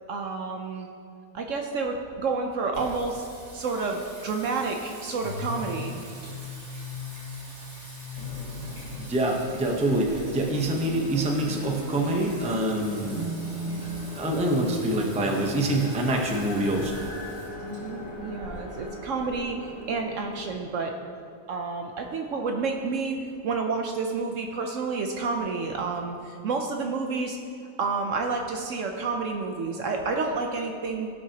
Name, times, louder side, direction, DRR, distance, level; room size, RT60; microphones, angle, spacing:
voice 1, 0.1-0.9 1.3-3.3 3.5-5.9 13.8-13.9 17.7-20.9 21.5-27.4 27.8-31.1, right 4 dB, 65° right, 3 dB, 0.9 m, -30 dB
Singing, 2.7-20.3, equal, 90° right, 2.8 m, -40 dB
sound 1, 8.1-20.5, left 2 dB, 55° left, 2.0 m, -40 dB
voice 2, 9.0-13.3 13.8-17.0, right 1 dB, 5° right, 0 dB, 0.6 m, -26 dB
16.5 x 6.0 x 2.9 m, 2.4 s
omnidirectional pair, 1.6 m